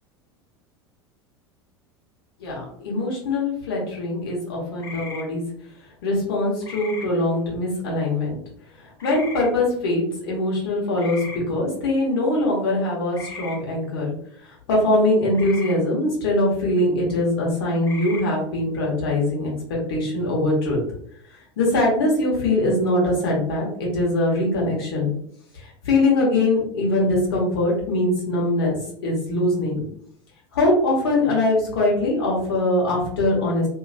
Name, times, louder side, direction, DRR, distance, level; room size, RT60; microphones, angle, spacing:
voice 1, 2.4-5.4 6.0-8.3 9.0-14.1 14.7-20.8 21.6-25.1 25.6-29.8 30.5-33.7, left 2 dB, 60° left, -3 dB, 1.2 m, -22 dB
sound 1, 4.8-5.2 6.6-7.1 9.0-9.5 10.9-11.4 13.1-13.6 15.3-15.8 17.8-18.2, left 4 dB, 20° left, 0.7 m, -37 dB
2.8 x 2.0 x 2.7 m, 0.66 s
figure-of-eight pair, 80°, 14 cm